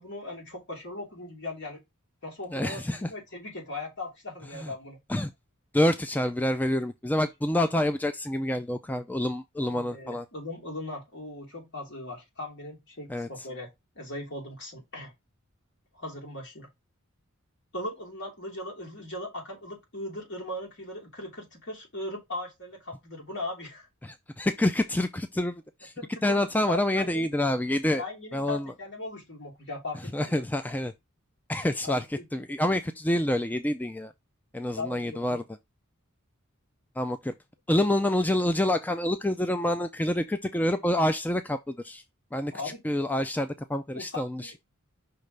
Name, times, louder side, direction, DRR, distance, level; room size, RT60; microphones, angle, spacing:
voice 1, 0.0-1.8 2.2-5.0 9.7-15.1 15.9-16.7 17.7-23.9 26.0-27.3 28.0-30.4 31.8-32.6 34.8-35.4 42.5-42.8 43.9-44.6, left 2 dB, 60° left, 3.0 m, -39 dB
voice 2, 2.5-3.1 4.6-4.7 5.1-5.3 5.7-10.3 13.1-13.3 24.0-25.9 26.2-28.0 28.3-28.7 30.1-30.9 31.5-32.0 32.3-34.1 34.5-35.4 37.0-37.3 37.7-42.0 42.3-42.5 42.8-44.6, left 1 dB, 10° left, 0.4 m, -27 dB
5.7 x 3.3 x 5.2 m
head